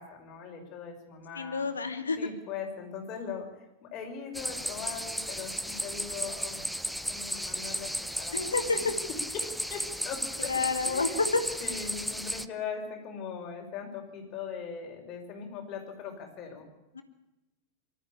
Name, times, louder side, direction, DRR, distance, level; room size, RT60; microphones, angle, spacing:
voice 1, 0.0-1.7 2.2-8.7 9.3-10.5 10.8-11.3 11.6-16.7, left 6 dB, 35° left, 3 dB, 5.6 m, -40 dB
voice 2, 1.3-2.2 8.3-8.9 10.4-11.4 16.9-17.0, left 4 dB, 75° left, 8 dB, 2.4 m, -29 dB
sound 1, 4.3-12.5, equal, ahead, 0.8 m, -34 dB
25.0 x 13.0 x 8.5 m, 0.99 s
figure-of-eight pair, 90°, 0 cm